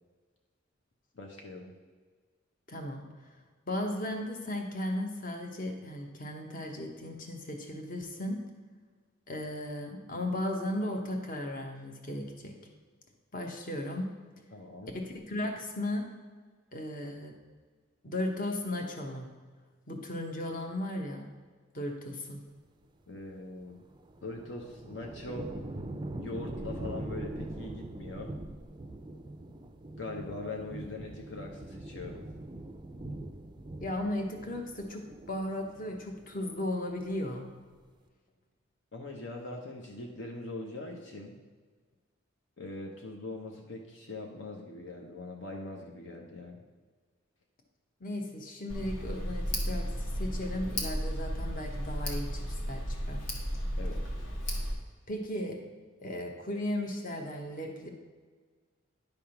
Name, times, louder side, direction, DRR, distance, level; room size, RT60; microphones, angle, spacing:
voice 1, 1.2-1.7 14.5-14.9 23.1-23.8 24.2-25.5 26.2-28.3 30.0-32.2 38.9-41.4 42.6-46.6 53.8-54.0, left 2 dB, 65° left, 1 dB, 0.8 m, -41 dB
voice 2, 2.7-3.1 3.7-8.4 9.3-12.5 13.3-14.1 14.9-16.0 16.7-17.4 18.0-19.3 19.9-21.3 21.7-22.4 33.8-37.5 48.0-53.2 55.1-55.6 56.0-57.9, left 1 dB, 45° left, 3 dB, 1.0 m, -36 dB
sound 1, 23.6-36.4 36.7-37.4, right 1 dB, 25° right, 0.4 m, -42 dB
Tick, 48.7-54.7, equal, 85° left, 1.5 m, -34 dB
10.5 x 3.5 x 5.7 m, 1.5 s
head